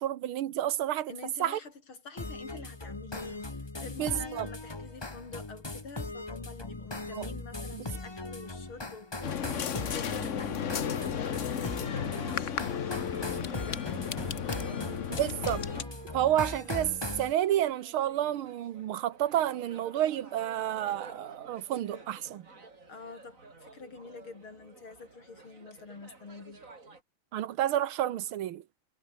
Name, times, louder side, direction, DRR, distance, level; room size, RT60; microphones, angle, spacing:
voice 1, 0.0-1.1 1.4-1.6 4.0-4.5 7.1-7.3 7.7-7.9 15.2-15.6 16.1-22.5 27.3-28.6, right 12 dB, 75° right, 1.8 m, -30 dB
voice 2, 1.1-10.6 11.0-15.2 22.9-26.6, left 4 dB, 70° left, 5.0 m, -47 dB
sound 1, 2.2-17.3, left 2 dB, 15° left, 1.1 m, -39 dB
sound 2, 9.2-15.8, left 8 dB, 45° left, 1.0 m, -34 dB
sound 3, 11.2-27.0, right 3 dB, 35° right, 3.7 m, -52 dB
omnidirectional pair, 2.4 m